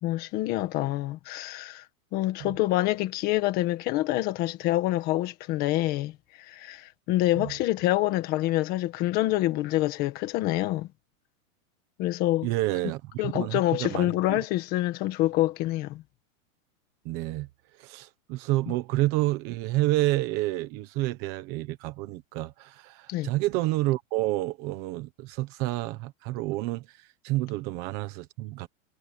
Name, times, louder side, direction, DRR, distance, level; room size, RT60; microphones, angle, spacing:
voice 1, 0.0-1.8 2.1-6.1 6.4-10.9 12.0-12.5 13.2-16.0 23.1-23.3, left 16 dB, 20° left, 1.6 m, -26 dB
voice 2, 12.4-14.4 17.0-17.5 17.8-28.7, right 18 dB, 25° right, 1.2 m, -29 dB
supercardioid pair, 180°, 42 cm